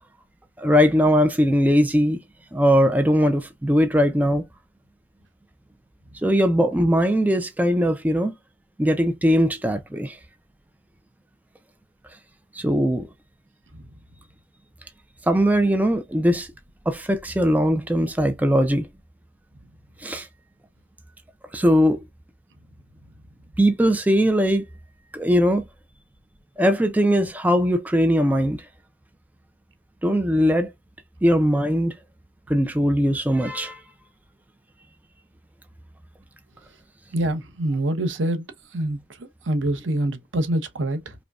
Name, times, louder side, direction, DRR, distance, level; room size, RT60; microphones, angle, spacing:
voice 1, 0.6-2.2 2.5-4.4 6.2-8.3 8.8-10.2 12.5-13.1 15.3-16.5 16.9-18.9 20.0-20.3 21.5-22.0 23.6-24.6 25.1-25.6 26.6-28.6 30.0-30.7 31.2-31.9 32.5-33.8, equal, 10° right, 0.3 m, -20 dB
voice 2, 37.1-38.4 38.7-41.1, right 1 dB, 85° right, 0.8 m, -25 dB
5.0 x 2.2 x 2.3 m
head